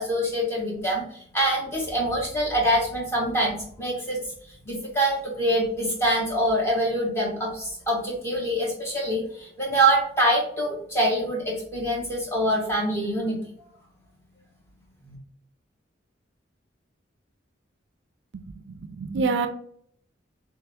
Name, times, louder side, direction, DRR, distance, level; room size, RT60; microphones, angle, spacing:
voice 1, 0.0-4.2 4.7-13.4 15.0-15.2, right 1 dB, 15° left, -4 dB, 1.3 m, -25 dB
voice 2, 18.3-19.5, right 4 dB, 65° right, 9 dB, 0.4 m, -28 dB
3.5 x 3.1 x 3.4 m, 0.64 s
head